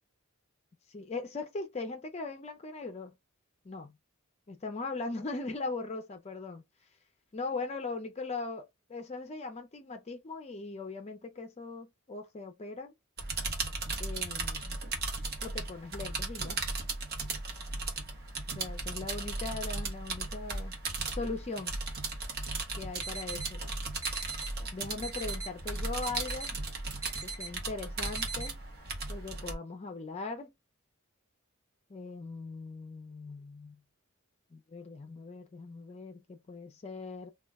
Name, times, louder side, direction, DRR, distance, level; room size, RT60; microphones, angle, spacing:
voice 1, 0.9-3.1 3.6-3.9 4.5-6.6 7.3-8.6 8.9-12.9 14.0-14.8 15.4-16.6 18.5-20.7 21.1-21.7 22.8-23.6 24.7-26.6 27.2-28.6 29.1-30.5 31.9-33.8 34.5-37.3, left 3 dB, 30° left, 0.4 m, -39 dB
sound 1, 13.2-29.5, right 3 dB, 45° right, 0.8 m, -36 dB
sound 2, 23.0-23.5 24.0-24.5 25.0-25.5 26.0-26.5 27.0-27.5 28.0-28.5, right 4 dB, 15° right, 0.7 m, -40 dB
2.3 x 2.1 x 3.4 m
head